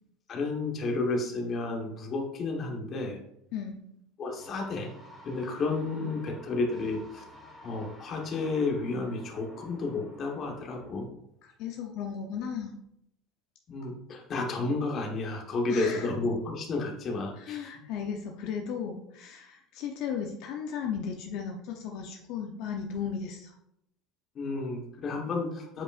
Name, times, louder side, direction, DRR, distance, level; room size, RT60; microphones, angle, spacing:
voice 1, 0.3-3.2 4.2-4.9 5.2-7.2 7.6-11.1 13.7-17.7 24.3-25.8, left 3 dB, 35° left, 1 dB, 1.2 m, -31 dB
voice 2, 3.5-3.8 6.0-6.4 11.4-12.7 15.7-16.1 17.4-23.5, left 7 dB, 60° left, 2 dB, 0.6 m, -36 dB
sound 1, 4.4-10.9, equal, ahead, 1.7 m, -51 dB
7.7 x 5.0 x 2.5 m, 0.78 s
cardioid pair, 150°, 0 cm